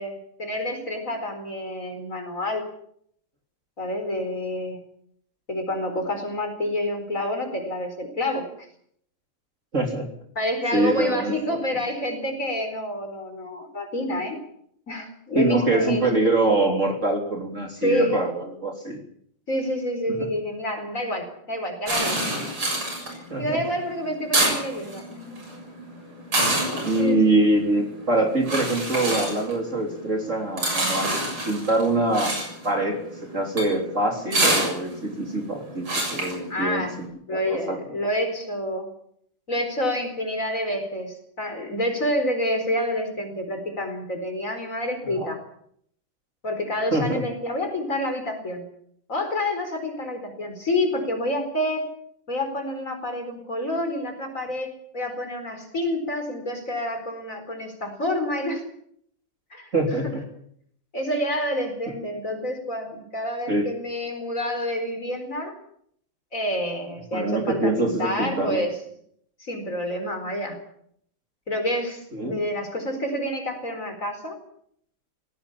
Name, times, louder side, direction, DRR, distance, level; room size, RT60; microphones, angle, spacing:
voice 1, 0.0-2.6 3.8-4.8 5.5-8.4 10.3-14.4 14.9-16.0 17.8-18.2 19.5-22.4 23.4-25.4 27.0-27.3 36.5-37.0 37.3-38.9 39.5-45.4 46.4-48.6 49.1-51.9 52.3-54.7 54.9-58.6 59.5-59.7 60.0-60.2 60.9-65.5 66.3-68.8 69.4-70.6 71.5-74.4, left 1 dB, 35° left, 5 dB, 4.8 m, -28 dB
voice 2, 9.7-10.1 10.7-11.6 15.3-19.0 20.1-20.2 23.3-23.6 26.8-31.1 31.5-32.3 32.6-33.0 33.3-37.1 37.3-37.8 45.2-45.3 46.9-47.2 59.7-60.2 63.5-63.7 67.1-68.6 72.1-72.4, right 2 dB, 35° right, 2 dB, 3.7 m, -24 dB
sound 1, 21.9-37.0, right 1 dB, 70° right, 8.0 m, -28 dB
18.5 x 17.5 x 8.6 m, 0.67 s
omnidirectional pair, 2.4 m